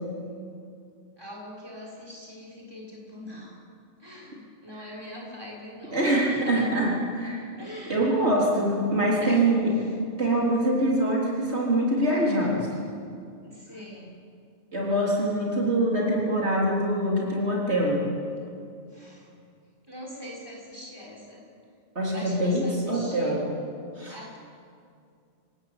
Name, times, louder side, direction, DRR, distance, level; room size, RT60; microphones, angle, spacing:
voice 1, 1.2-3.6 4.0-6.7 7.6-8.1 9.2-9.9 13.4-14.1 18.9-19.3 19.9-21.4 22.1-23.4 24.1-24.4, left 1 dB, 20° right, -3 dB, 6.0 m, -41 dB
voice 2, 5.9-7.4 7.9-9.7 10.2-12.7 14.7-18.0 22.0-23.4 24.0-24.1, right 1 dB, 65° right, -4 dB, 4.1 m, -24 dB
27.5 x 17.0 x 8.8 m, 2.3 s
omnidirectional pair, 1.2 m